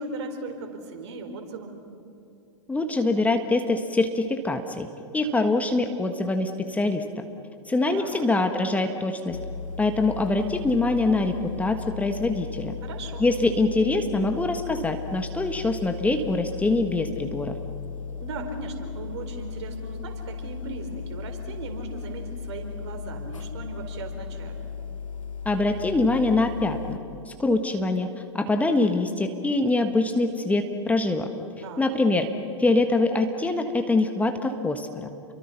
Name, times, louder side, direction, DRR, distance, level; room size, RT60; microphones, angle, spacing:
voice 1, 0.0-1.8 7.9-8.3 12.8-13.3 18.1-24.6 31.6-31.9, right 3 dB, 60° right, 5 dB, 4.3 m, -38 dB
voice 2, 2.7-4.9 5.1-7.2 7.7-9.4 9.8-12.7 13.2-17.6 25.4-27.0 27.3-28.1 28.3-31.3 31.8-32.3 32.6-35.1, left 2 dB, 10° left, 6 dB, 1.5 m, -24 dB
sound 1, 9.3-27.0, left 6 dB, 90° left, 1.0 m, -36 dB
30.0 x 23.5 x 5.9 m, 2.8 s
hypercardioid pair, 105°, 16 cm